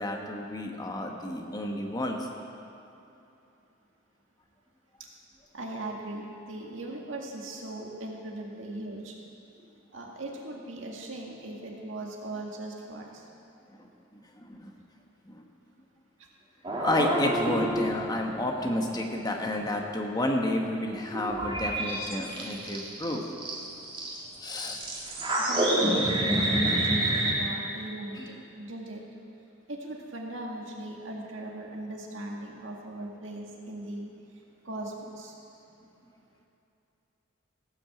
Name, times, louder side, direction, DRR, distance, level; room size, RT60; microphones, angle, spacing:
voice 1, 0.0-2.3 14.1-14.7 15.3-15.4 16.8-23.2 24.4-24.8 28.1-28.3, left 1 dB, 20° left, 1 dB, 1.1 m, -31 dB
voice 2, 5.5-9.1 9.9-13.2 25.5-29.0 29.7-34.1 34.7-35.3, right 1 dB, 80° right, -1 dB, 1.9 m, -39 dB
sound 1, 16.6-18.9 19.1-19.7 20.7-20.8 21.1-24.2 24.5-27.3, right 1 dB, 25° right, 2.2 m, -28 dB
17.0 x 6.1 x 7.8 m, 2.9 s
head